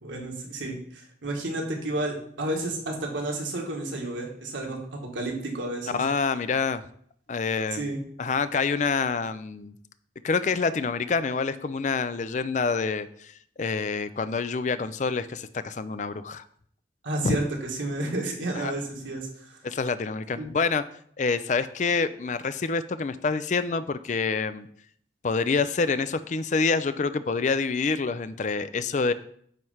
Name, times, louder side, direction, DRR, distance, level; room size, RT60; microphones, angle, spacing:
voice 1, 0.0-6.0 7.7-8.0 17.0-19.6 20.4-20.5, right 2 dB, 85° right, 0 dB, 1.8 m, -31 dB
voice 2, 5.9-6.8 7.3-7.8 8.2-9.7 10.2-16.4 17.2-17.4 18.6-18.7 19.6-20.8 21.2-24.7 25.2-29.1, left 4 dB, 40° left, 13 dB, 0.4 m, -27 dB
9.1 x 3.3 x 5.6 m, 0.63 s
head